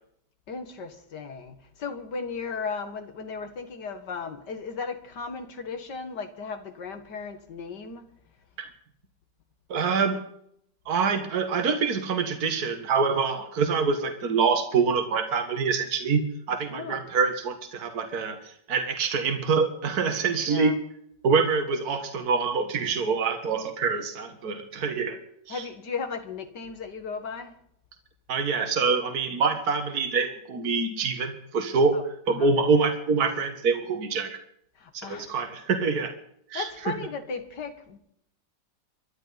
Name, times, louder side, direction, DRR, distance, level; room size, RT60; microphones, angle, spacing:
voice 1, 0.5-8.1 16.7-17.0 20.5-20.8 25.5-27.5 31.9-32.0 32.3-32.5 34.8-35.3 36.5-38.0, left 5 dB, 75° left, 2.3 m, -36 dB
voice 2, 9.7-10.2 10.9-20.8 21.2-25.2 25.5-25.6 28.3-32.0 32.3-34.4 34.9-36.1 36.5-36.9, right 5 dB, 60° right, 2.1 m, -25 dB
24.5 x 12.0 x 4.1 m
omnidirectional pair, 1.9 m